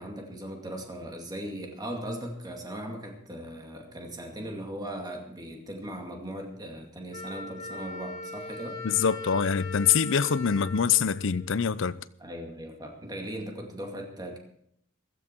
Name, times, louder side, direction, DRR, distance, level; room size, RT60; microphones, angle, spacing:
voice 1, 0.0-8.9 12.2-14.4, right 1 dB, 20° right, 2.2 m, -38 dB
Wind instrument woodwind instrument, 7.1-11.9, left 3 dB, 40° left, 2.4 m, -40 dB
voice 2, 8.8-11.9, left 7 dB, 70° left, 0.6 m, -24 dB
16.0 x 14.0 x 4.5 m
head